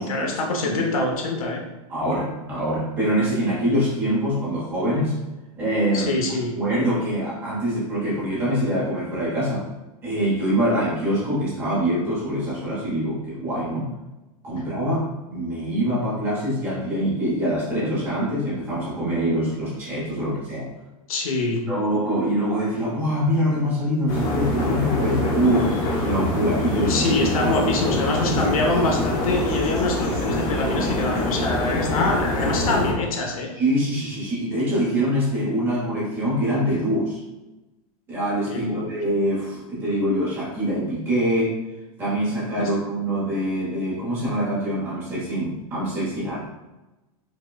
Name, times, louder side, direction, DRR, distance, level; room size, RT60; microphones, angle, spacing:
voice 1, 0.0-1.6 5.9-6.5 14.6-14.7 21.1-21.6 26.9-33.5 38.5-38.9 42.6-42.7, left 2 dB, 70° left, 0 dB, 0.8 m, -25 dB
voice 2, 1.9-5.2 5.6-6.2 6.5-9.6 10.0-13.9 14.4-20.7 21.7-27.1 33.5-37.2 38.1-41.6 42.0-46.4, equal, 10° right, -8 dB, 0.8 m, -24 dB
sound 1, 24.1-32.9, left 1 dB, 15° left, 0.3 m, -24 dB
4.8 x 2.1 x 2.3 m, 1.0 s
supercardioid pair, 180°, 19 cm